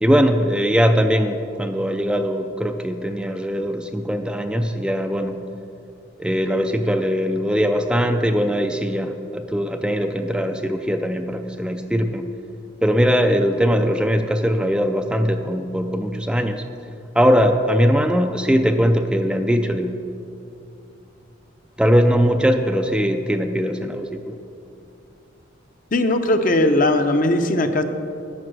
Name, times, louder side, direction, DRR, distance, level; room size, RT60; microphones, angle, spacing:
voice 1, 0.0-5.4 6.2-12.3 12.8-16.7 17.1-20.0 21.8-24.4, equal, 5° right, 5 dB, 0.3 m, -20 dB
voice 2, 25.9-27.8, left 1 dB, 45° left, 7 dB, 0.7 m, -18 dB
11.0 x 8.7 x 6.2 m, 2.7 s
head